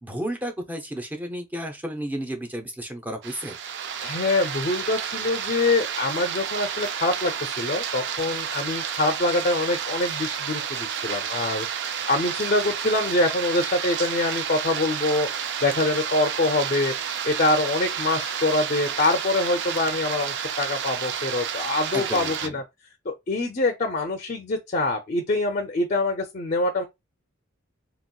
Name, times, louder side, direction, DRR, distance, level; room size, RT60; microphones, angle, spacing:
voice 1, 0.0-3.6 21.9-22.6, equal, 10° right, 0.6 m, -32 dB
sound 1, 3.2-22.5, right 8 dB, 55° right, 0.4 m, -30 dB
voice 2, 4.0-22.6 23.1-26.8, left 2 dB, 40° left, 0.5 m, -25 dB
2.9 x 2.8 x 2.2 m
head